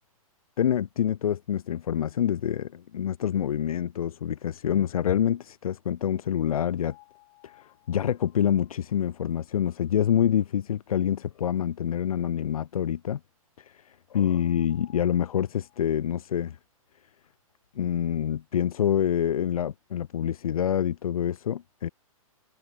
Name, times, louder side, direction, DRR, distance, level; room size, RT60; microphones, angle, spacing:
voice 1, 0.6-6.9 7.4-7.5 7.9-13.2 13.7-13.8 14.1-16.6 17.8-21.9, left 9 dB, 75° left, 0.8 m, -26 dB
sound 1, 6.9-10.2 10.6-10.7 11.0-11.1 11.3-12.1 14.3-16.2, left 29 dB, 35° left, 4.8 m, -60 dB
hypercardioid pair, 135°, 18 cm